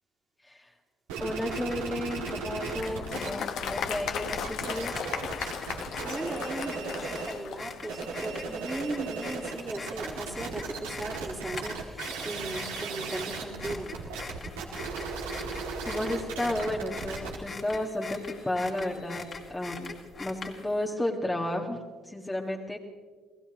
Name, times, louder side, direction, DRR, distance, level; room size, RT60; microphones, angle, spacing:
sound 1, 1.1-3.3 3.5-7.4 7.8-19.3, right 4 dB, 85° right, 2.3 m, -37 dB
voice 1, 1.2-4.9 15.9-19.9 20.2-21.8 22.1-22.8, left 1 dB, 15° left, 0 dB, 1.7 m, -32 dB
sound 2, 1.4-20.8, left 4 dB, 40° left, 2.6 m, -43 dB
Applause, 2.8-8.3, left 7 dB, 65° left, 1.3 m, -36 dB
voice 2, 6.0-14.5, right 2 dB, 20° right, 0 dB, 2.5 m, -38 dB
30.0 x 16.0 x 3.0 m, 1.5 s
hypercardioid pair, 65°, 0 cm